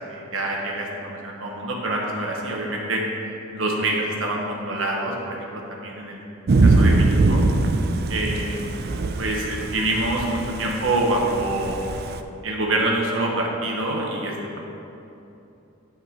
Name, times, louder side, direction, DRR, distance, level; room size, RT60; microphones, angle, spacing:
voice 1, 0.1-3.0 3.5-6.2 6.6-7.4 8.1-8.6 9.2-11.8 12.4-14.6, right 2 dB, 65° right, -1 dB, 1.3 m, -26 dB
Thunder / Rain, 6.5-12.2, right 2 dB, 50° right, 0.4 m, -22 dB
9.0 x 9.0 x 3.1 m, 2.9 s
head